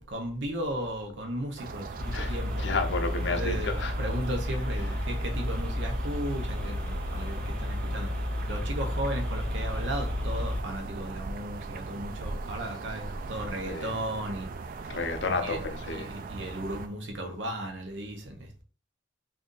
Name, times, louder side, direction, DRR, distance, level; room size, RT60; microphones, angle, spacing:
voice 1, 0.0-2.6 3.1-14.5 15.4-15.6 15.9-18.6, right 1 dB, 75° right, 0.8 m, -35 dB
sound 1, 1.6-16.9, right 4 dB, 50° right, 0.3 m, -39 dB
sound 2, 2.0-10.6, left 1 dB, 5° left, 0.6 m, -32 dB
voice 2, 2.1-3.9 13.7-14.0 14.9-16.1, left 3 dB, 70° left, 0.5 m, -31 dB
2.6 x 2.6 x 3.7 m
head